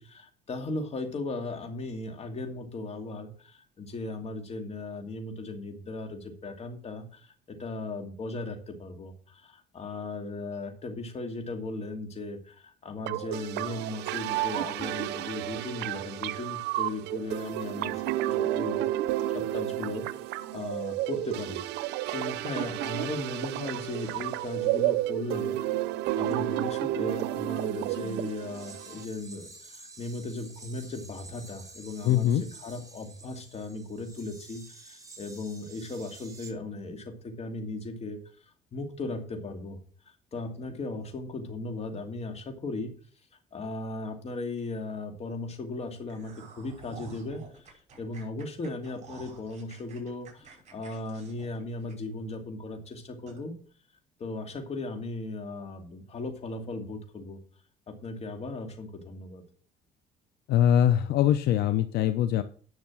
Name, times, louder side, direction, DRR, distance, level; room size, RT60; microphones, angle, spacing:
voice 1, 0.0-18.9 19.3-20.1 20.5-21.6 22.1-25.6 26.2-38.2 38.7-39.8 40.1-42.9 43.5-53.5 54.2-57.4 57.9-59.4, left 2 dB, 40° left, 5 dB, 2.7 m, -37 dB
sound 1, 13.1-29.0, right 15 dB, 85° right, 0.6 m, -31 dB
sound 2, 28.5-36.5, right 3 dB, 20° right, 2.9 m, -50 dB
voice 2, 32.0-32.4 60.5-62.4, left 10 dB, 75° left, 11 dB, 0.7 m, -22 dB
sound 3, 46.1-52.3 52.7-52.8 53.3-53.4, right 3 dB, 40° right, 5.9 m, -50 dB
10.5 x 6.5 x 6.2 m, 0.44 s
cardioid pair, 110°, 17 cm